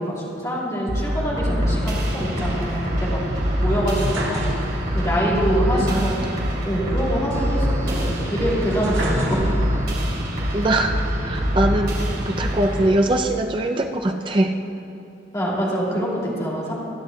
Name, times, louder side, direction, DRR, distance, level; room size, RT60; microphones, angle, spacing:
voice 1, 0.0-3.2 3.6-4.4 4.9-6.2 6.6-9.4 15.3-16.7, equal, 20° left, -6 dB, 2.5 m, -25 dB
sound 1, 0.9-12.9, equal, 50° right, 2.8 m, -24 dB
sound 2, 2.1-5.1 5.4-5.5 7.3-10.0 10.6-11.4, right 1 dB, 80° right, 1.7 m, -31 dB
voice 2, 5.9-6.3 10.5-11.9 12.3-14.5, right 1 dB, 25° right, 4 dB, 0.4 m, -22 dB
21.0 x 9.7 x 2.3 m, 2.9 s
head